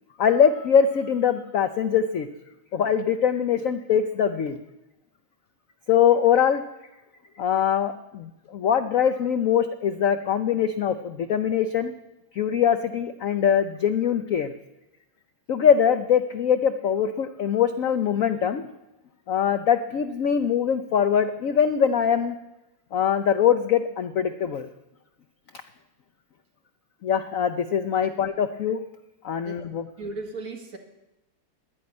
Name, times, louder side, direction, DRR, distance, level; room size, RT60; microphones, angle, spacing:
voice 1, 0.2-2.3 2.7-4.6 5.9-6.6 7.4-11.9 12.4-14.5 15.5-18.6 19.3-22.3 22.9-24.7 27.0-28.8 29.2-29.9, left 8 dB, 80° left, 10 dB, 0.7 m, -22 dB
voice 2, 30.0-30.8, right 3 dB, 45° right, 3 dB, 2.1 m, -36 dB
10.5 x 10.5 x 9.6 m, 0.96 s
omnidirectional pair, 2.2 m